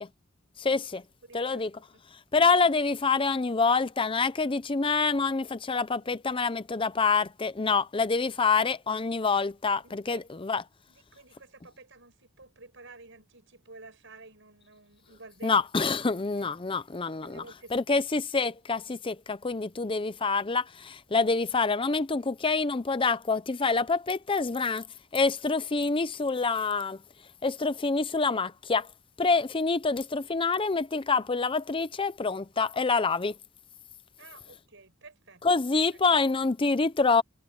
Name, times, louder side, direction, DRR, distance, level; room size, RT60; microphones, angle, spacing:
voice 1, 0.6-1.0 1.3-1.7 2.3-10.6 15.4-17.4 17.7-24.8 25.1-27.0 27.4-28.9 29.2-33.3 35.4-37.2, left 4 dB, 25° left, 0.6 m, -26 dB
voice 2, 1.3-2.0 9.8-10.2 10.9-15.6 16.2-16.5 17.2-18.0 34.2-35.4, right 3 dB, 60° right, 7.8 m, -51 dB
head